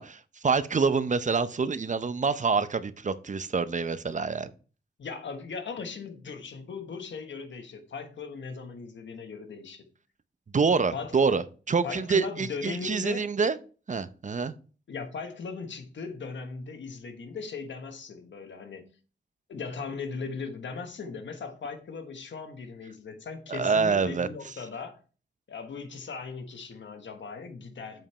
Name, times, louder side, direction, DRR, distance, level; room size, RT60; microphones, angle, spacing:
voice 1, 0.0-4.5 10.5-13.6 13.9-14.5 23.5-24.3, right 5 dB, 40° right, 0.7 m, -26 dB
voice 2, 5.0-9.9 10.9-11.1 11.8-13.3 14.9-18.8 19.5-25.0 25.5-28.1, left 5 dB, 80° left, 1.3 m, -38 dB
7.5 x 5.2 x 4.3 m
cardioid pair, 70°, 19 cm